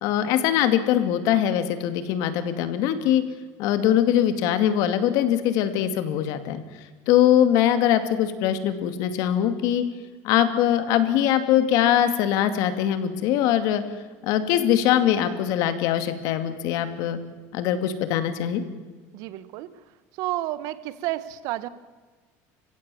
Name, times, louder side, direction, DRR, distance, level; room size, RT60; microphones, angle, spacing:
voice 1, 0.0-3.2 3.6-6.6 7.1-9.8 10.2-13.8 14.2-17.2 17.5-18.6, left 10 dB, 65° left, 10 dB, 2.4 m, -22 dB
voice 2, 19.1-19.7 20.2-21.7, right 15 dB, 65° right, 15 dB, 1.3 m, -30 dB
30.0 x 16.0 x 7.1 m, 1.4 s
cardioid pair, 145°, 7 cm